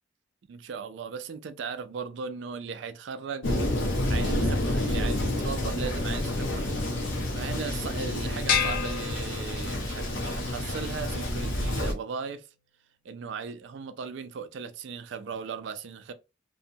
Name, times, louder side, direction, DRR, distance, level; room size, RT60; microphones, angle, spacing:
voice 1, 0.5-3.5 4.1-6.7 7.3-12.5 13.0-16.1, right 5 dB, 65° right, 0.3 m, -37 dB
Thunder, 3.4-11.9, left 1 dB, 80° left, 0.7 m, -29 dB
sound 1, 8.5-10.0, left 8 dB, 50° left, 0.4 m, -29 dB
2.7 x 2.1 x 2.6 m
head